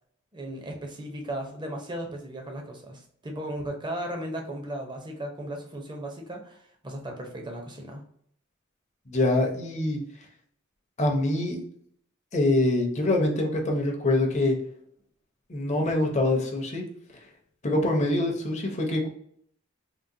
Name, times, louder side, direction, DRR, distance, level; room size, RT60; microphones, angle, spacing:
voice 1, 0.3-8.0, right 1 dB, 20° right, 2 dB, 0.6 m, -36 dB
voice 2, 9.1-10.0 11.0-11.6 12.3-14.6 15.5-16.8 17.6-19.1, left 2 dB, 35° left, 2 dB, 0.7 m, -24 dB
3.7 x 2.1 x 2.6 m, 0.65 s
head